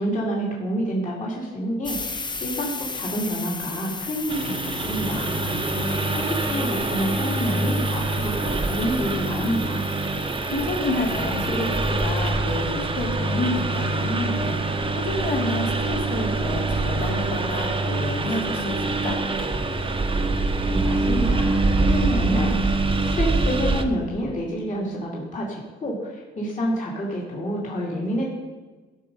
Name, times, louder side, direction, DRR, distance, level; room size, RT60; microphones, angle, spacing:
voice 1, 0.0-5.3 6.1-9.8 20.4-28.3, equal, 40° left, -4 dB, 2.6 m, -28 dB
sound 1, 1.8-12.4, left 3 dB, 25° left, 0.9 m, -35 dB
Engine, 4.3-23.8, right 2 dB, 25° right, 1.0 m, -25 dB
voice 2, 5.2-6.1 10.5-14.6 14.9-19.2, left 2 dB, 60° left, -1 dB, 2.9 m, -29 dB
13.5 x 6.4 x 5.4 m, 1.3 s
cardioid pair, 90°, 20 cm